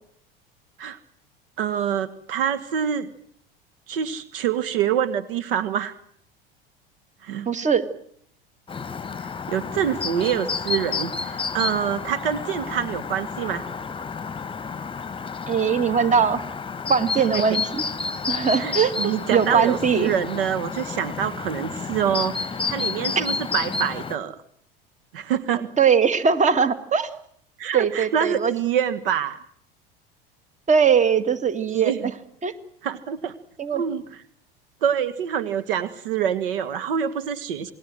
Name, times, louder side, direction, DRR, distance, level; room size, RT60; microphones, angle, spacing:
voice 1, 1.6-3.1 3.9-5.9 7.2-7.5 9.5-13.6 17.3-17.4 18.5-24.4 25.1-25.7 27.6-29.4 31.7-32.1 32.8-33.3 33.7-34.0 34.8-37.7, right 9 dB, 70° right, 14 dB, 1.6 m, -26 dB
voice 2, 7.5-7.8 15.5-16.4 16.9-17.9 18.3-20.1 23.2-23.3 25.5-27.1 27.7-28.5 30.7-31.9 32.4-32.5 33.6-33.8, right 6 dB, 25° right, 13 dB, 2.1 m, -21 dB
Chirp tweet, 8.7-24.2, left 5 dB, 15° left, 1.3 m, -30 dB
28.0 x 20.0 x 7.8 m, 0.67 s
figure-of-eight pair, 75°, 29 cm